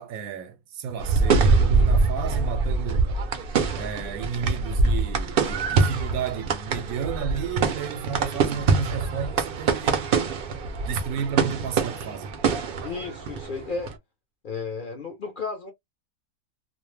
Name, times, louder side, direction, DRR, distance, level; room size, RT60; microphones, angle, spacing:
voice 1, 0.0-3.1 3.7-10.1 10.8-12.3, right 7 dB, 80° right, 1.0 m, -32 dB
sound 1, 1.0-13.9, right 4 dB, 60° right, 0.6 m, -24 dB
voice 2, 12.8-13.9 14.4-15.7, left 4 dB, 50° left, 0.6 m, -33 dB
2.5 x 2.0 x 3.1 m
omnidirectional pair, 1.5 m